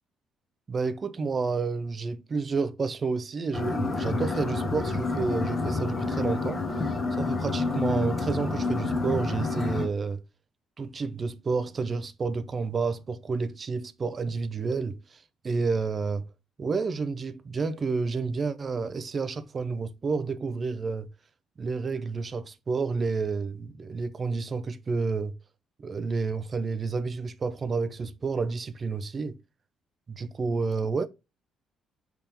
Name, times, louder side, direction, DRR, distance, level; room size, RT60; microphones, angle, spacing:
voice 1, 0.7-10.2 10.8-15.2 15.4-16.2 16.6-21.1 21.6-25.3 25.8-29.4 30.1-31.1, right 4 dB, 30° right, 0.4 m, -30 dB
sound 1, 3.5-9.9, left 3 dB, 20° left, 1.0 m, -28 dB
5.3 x 3.5 x 2.9 m
cardioid pair, 140°, 0 cm